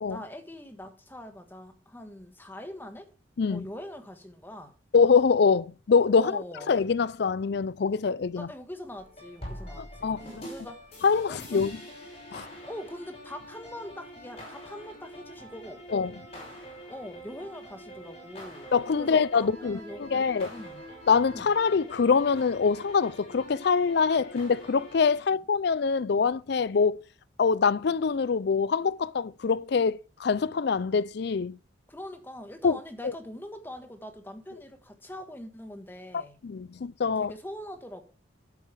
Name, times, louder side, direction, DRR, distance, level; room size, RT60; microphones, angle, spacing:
voice 1, 0.1-3.1 3.5-4.7 6.1-6.7 8.4-10.9 11.3-11.7 12.7-15.8 16.9-20.8 21.3-21.5 31.9-36.4 37.2-38.1, left 1 dB, 10° left, 1.4 m, -42 dB
voice 2, 4.9-8.5 9.8-10.5 11.0-11.8 12.3-12.5 15.9-16.1 18.7-20.5 21.1-27.0 27.4-31.6 32.6-32.8 33.0-33.1 36.1-37.3, left 5 dB, 55° left, 0.4 m, -24 dB
sound 1, 9.0-25.2, equal, 30° left, 5.2 m, -45 dB
10.5 x 8.5 x 3.3 m
head